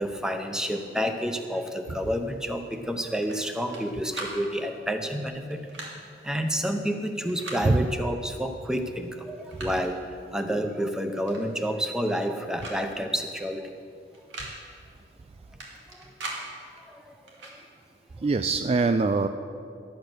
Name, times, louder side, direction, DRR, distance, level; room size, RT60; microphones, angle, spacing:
voice 1, 0.0-5.6 6.2-10.0 10.3-13.7 15.9-16.1 16.8-17.1 17.4-17.5, equal, 5° right, 6 dB, 0.7 m, -29 dB
sound 1, 3.2-3.8 4.1-4.4 5.5-5.9 7.2-7.6 8.7-8.8 9.2-9.9 11.3-11.4 11.7-12.3 12.6-12.8 13.1-13.2 14.1-14.5 15.6-16.4 17.3-17.6, right 2 dB, 90° right, 2.2 m, -39 dB
voice 2, 18.2-19.3, right 3 dB, 35° right, 8 dB, 0.3 m, -23 dB
12.0 x 8.0 x 6.6 m, 2.4 s
head